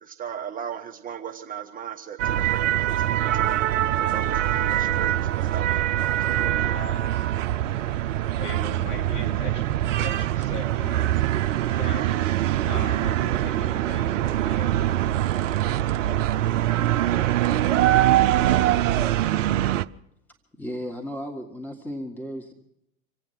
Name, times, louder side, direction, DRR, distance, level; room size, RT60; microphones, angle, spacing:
voice 1, 0.0-3.0 3.3-5.7 6.3-6.7, right 8 dB, 20° right, 3 dB, 0.9 m, -37 dB
sound 1, 2.2-19.9, right 13 dB, 60° right, 0.7 m, -23 dB
voice 2, 6.6-7.2 8.3-11.3 11.7-14.8, left 2 dB, 55° left, -1 dB, 5.5 m, -39 dB
voice 3, 20.5-22.5, equal, 5° left, 3 dB, 1.8 m, -34 dB
26.5 x 8.8 x 6.0 m, 0.78 s
figure-of-eight pair, 95°, 44 cm